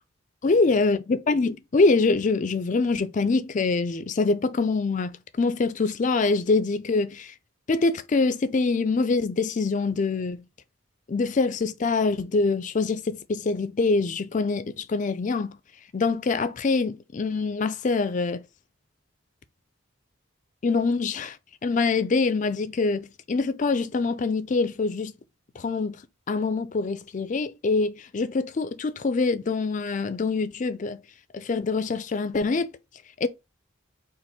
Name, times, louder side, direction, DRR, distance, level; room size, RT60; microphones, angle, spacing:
voice 1, 0.4-5.1 5.4-7.3 7.7-10.4 11.1-15.6 15.9-18.4 20.6-21.4 21.6-25.1 25.6-26.0 26.3-31.0 31.3-32.7 33.2-33.3, left 3 dB, 40° left, 0.4 m, -24 dB
4.3 x 2.5 x 4.1 m
head